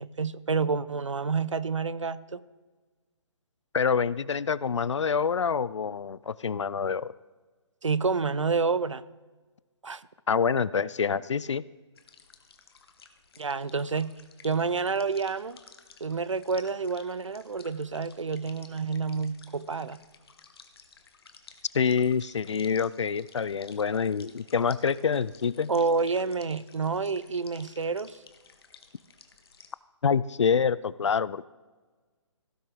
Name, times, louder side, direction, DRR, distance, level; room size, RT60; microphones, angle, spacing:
voice 1, 0.0-2.4 7.8-9.0 9.8-10.0 13.4-14.1 14.4-15.6 16.0-20.0 25.7-28.2, right 4 dB, 80° right, 17 dB, 0.5 m, -29 dB
voice 2, 3.7-7.1 10.3-11.6 21.7-25.7 30.0-31.5, left 6 dB, 70° left, 20 dB, 0.4 m, -26 dB
sound 1, 11.9-29.7, left 5 dB, 55° left, 1.1 m, -54 dB
16.5 x 6.6 x 3.7 m, 1.3 s
figure-of-eight pair, 135°, 16 cm